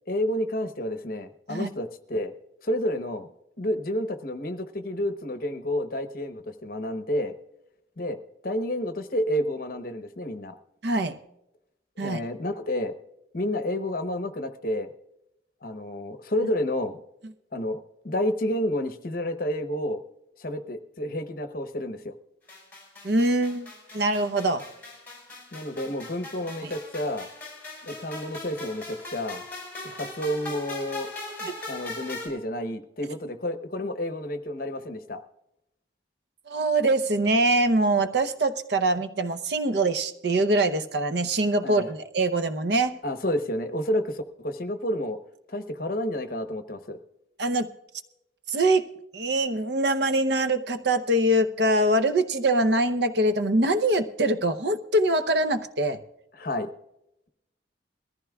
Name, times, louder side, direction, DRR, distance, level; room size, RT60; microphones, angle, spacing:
voice 1, 0.1-2.3 2.6-3.3 3.6-7.3 8.0-8.2 8.4-10.6 12.0-12.9 13.3-14.9 15.6-17.0 17.5-20.0 20.4-22.1 25.5-27.3 27.8-29.4 29.8-31.1 31.4-35.2 41.6-41.9 43.0-45.2 45.5-47.0 56.3-56.7, left 1 dB, 50° left, 9 dB, 0.9 m, -30 dB
voice 2, 10.8-11.2 12.0-12.2 23.0-24.7 26.6-26.7 31.4-31.5 36.5-43.0 47.4-47.7 48.5-56.0, right 1 dB, 60° right, 11 dB, 0.8 m, -24 dB
sound 1, 22.5-32.3, left 2 dB, 10° left, 5.1 m, -40 dB
21.5 x 14.5 x 2.4 m, 0.87 s
head